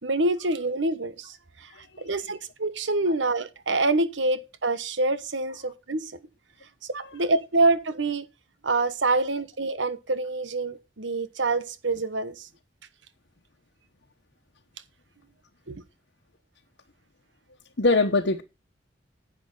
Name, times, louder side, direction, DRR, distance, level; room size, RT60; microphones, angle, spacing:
voice 1, 0.0-1.7 2.0-6.1 6.9-8.3 8.6-12.5 15.7-15.8, right 2 dB, 80° right, 1.2 m, -26 dB
voice 2, 1.7-2.1 7.0-7.1 17.8-18.4, left 3 dB, 70° left, 1.2 m, -23 dB
10.5 x 8.9 x 4.0 m
head